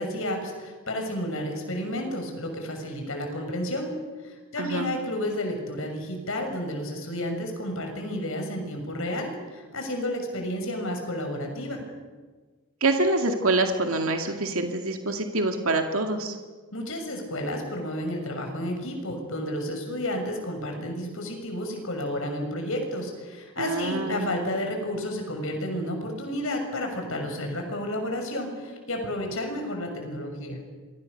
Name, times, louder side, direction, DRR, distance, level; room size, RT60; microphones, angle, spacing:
voice 1, 0.0-3.9 4.2-11.8 16.7-30.6, left 1 dB, 65° left, 3 dB, 6.5 m, -31 dB
voice 2, 4.6-4.9 12.8-16.3 23.6-24.4, right 2 dB, 70° right, 4 dB, 2.3 m, -26 dB
28.0 x 23.0 x 6.8 m, 1.4 s
head